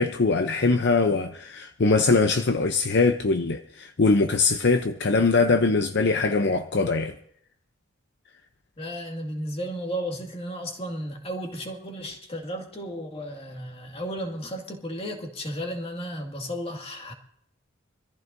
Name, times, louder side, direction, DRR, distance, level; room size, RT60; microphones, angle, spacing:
voice 1, 0.0-7.1, left 3 dB, 60° left, 0.7 m, -22 dB
voice 2, 8.8-17.1, equal, 30° left, 2.0 m, -34 dB
25.5 x 14.5 x 2.7 m
head